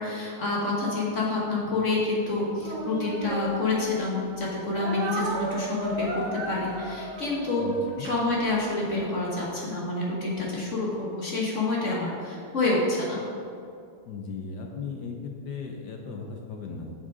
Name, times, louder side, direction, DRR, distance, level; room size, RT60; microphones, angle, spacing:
voice 1, 0.0-7.7 8.0-13.2, left 2 dB, 40° left, -4 dB, 1.3 m, -28 dB
Speech, 2.5-4.1 4.7-8.8, right 2 dB, 55° right, 1.8 m, -34 dB
voice 2, 7.6-8.1 14.1-16.9, left 5 dB, 65° left, 2 dB, 1.1 m, -37 dB
7.4 x 6.4 x 4.9 m, 2.4 s
omnidirectional pair, 2.3 m